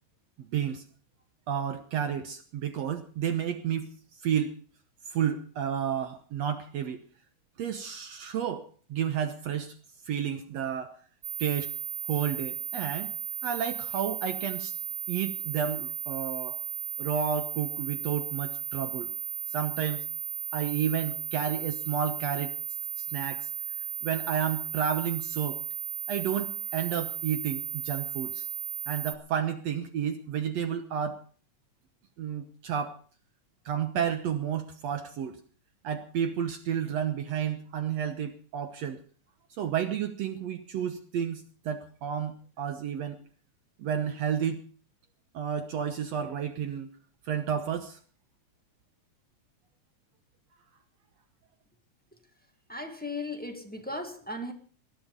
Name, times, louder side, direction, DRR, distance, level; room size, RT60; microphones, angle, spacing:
voice 1, 0.4-0.8 1.5-3.9 4.2-4.6 5.1-7.0 7.6-9.7 10.1-10.9 11.4-11.7 12.1-13.1 13.4-14.7 15.1-16.6 17.0-19.1 19.5-20.0 20.5-22.5 23.0-23.5 24.0-25.6 26.1-28.5 28.9-31.2 32.2-33.0 33.7-35.4 35.8-39.0 39.6-43.2 43.8-44.6 45.3-46.9 47.3-48.0, right 8 dB, 65° right, 9 dB, 2.1 m, -31 dB
sound 1, 11.2-29.1, right 4 dB, 25° right, 1.0 m, -35 dB
voice 2, 52.7-54.5, left 2 dB, 5° left, 5 dB, 1.2 m, -36 dB
19.0 x 12.0 x 5.4 m, 0.42 s
omnidirectional pair, 3.4 m